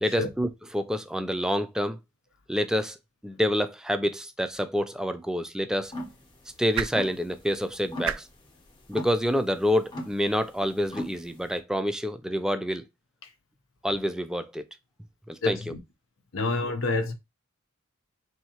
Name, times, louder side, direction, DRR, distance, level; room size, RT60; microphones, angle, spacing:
voice 1, 0.0-2.0 2.5-3.0 3.2-5.9 6.6-8.3 8.9-12.8 13.8-14.6 15.3-15.6, equal, 5° right, 0.3 m, -27 dB
sound 1, 4.9-11.2, right 9 dB, 75° right, 0.3 m, -40 dB
sound 2, 5.9-11.6, left 1 dB, 25° left, 0.8 m, -40 dB
voice 2, 15.4-15.8 16.3-17.1, left 3 dB, 70° left, 0.8 m, -28 dB
4.3 x 2.8 x 2.9 m
head